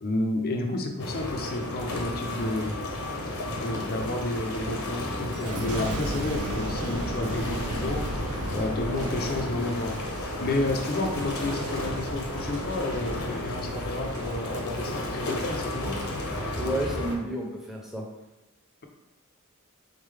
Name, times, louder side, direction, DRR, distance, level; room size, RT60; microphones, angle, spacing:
voice 1, 0.0-2.9 3.5-8.1 8.5-10.0 10.4-16.1, left 2 dB, 45° left, 3 dB, 0.5 m, -31 dB
sound 1, 1.0-17.1, left 1 dB, 70° left, 0.9 m, -33 dB
Boom, 5.3-14.7 15.2-15.7, right 1 dB, 85° right, 0.7 m, -37 dB
voice 2, 16.6-18.1, right 1 dB, ahead, -2 dB, 0.7 m, -31 dB
3.9 x 3.6 x 3.3 m, 0.98 s
head